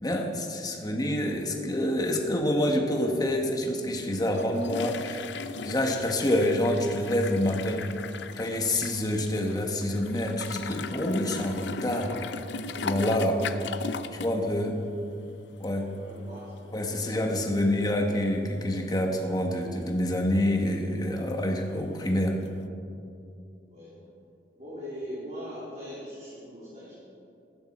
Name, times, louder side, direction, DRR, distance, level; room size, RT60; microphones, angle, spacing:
voice 1, 0.0-5.2 5.6-7.9 8.4-12.2 12.8-13.5 14.1-14.8 15.6-15.9 16.7-22.4, left 1 dB, 20° left, 2 dB, 1.4 m, -27 dB
sound 1, 4.2-14.4 14.7-14.9 15.6-15.7 16.1-16.2 22.5-22.6, left 4 dB, 70° left, 0.6 m, -37 dB
voice 2, 15.9-16.6 16.9-17.4 23.7-24.0 24.5-26.9, equal, 40° right, -8 dB, 3.3 m, -41 dB
15.0 x 14.0 x 4.4 m, 2.6 s
head